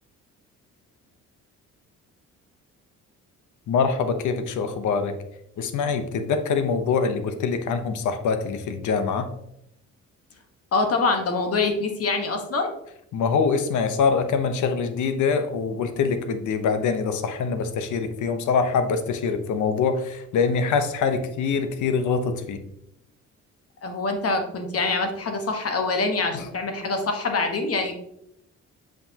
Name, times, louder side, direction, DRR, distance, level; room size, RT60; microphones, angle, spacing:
voice 1, 3.7-5.1 5.6-9.3 13.1-22.6 26.3-26.5, left 5 dB, 75° left, 9 dB, 0.9 m, -24 dB
voice 2, 10.7-12.7 23.8-27.9, left 3 dB, 50° left, 4 dB, 1.3 m, -25 dB
7.7 x 5.0 x 2.9 m, 0.78 s
cardioid pair, 90°, 30 cm